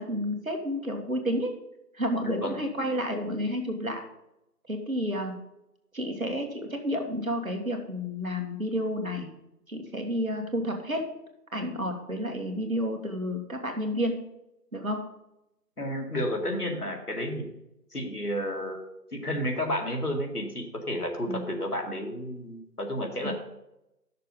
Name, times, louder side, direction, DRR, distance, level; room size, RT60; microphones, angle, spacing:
voice 1, 0.0-1.5 1.9-4.0 4.7-5.4 5.9-9.3 9.7-11.1 11.5-14.2 14.7-15.0 21.3-21.4 23.2-23.3, equal, 55° right, 3 dB, 1.8 m, -30 dB
voice 2, 2.2-2.6 15.8-17.5 17.9-18.8 19.1-23.3, equal, 65° left, 2 dB, 2.1 m, -31 dB
10.5 x 6.7 x 5.3 m, 0.87 s
figure-of-eight pair, 175°, 49 cm